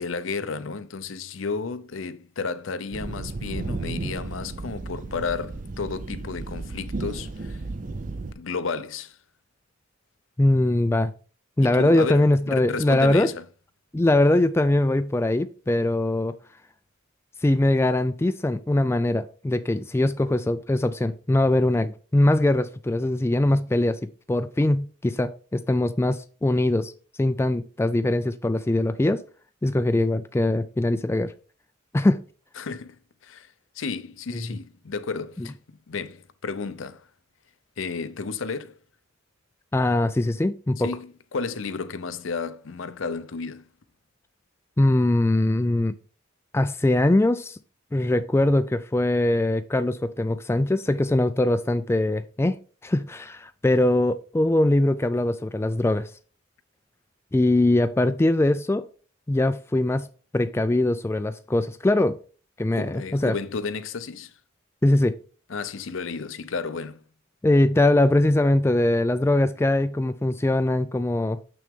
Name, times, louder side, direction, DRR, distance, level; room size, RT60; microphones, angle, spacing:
voice 1, 0.0-7.6 8.4-9.2 11.6-13.4 32.6-37.1 37.8-38.8 40.8-43.7 62.7-64.4 65.5-67.0, left 4 dB, 70° left, 0.6 m, -32 dB
sound 1, 2.9-8.3, right 3 dB, 40° right, 0.5 m, -33 dB
voice 2, 10.4-11.1 11.6-13.3 13.9-16.4 17.4-24.0 24.3-26.9 27.2-29.2 29.6-31.3 31.9-32.2 34.3-34.4 39.7-40.9 44.8-45.9 46.5-47.6 47.9-52.6 52.8-56.1 57.3-58.8 59.3-60.1 60.3-62.2 62.6-63.3 64.8-65.2 67.4-71.4, left 1 dB, 10° left, 0.3 m, -22 dB
7.0 x 6.0 x 3.6 m
head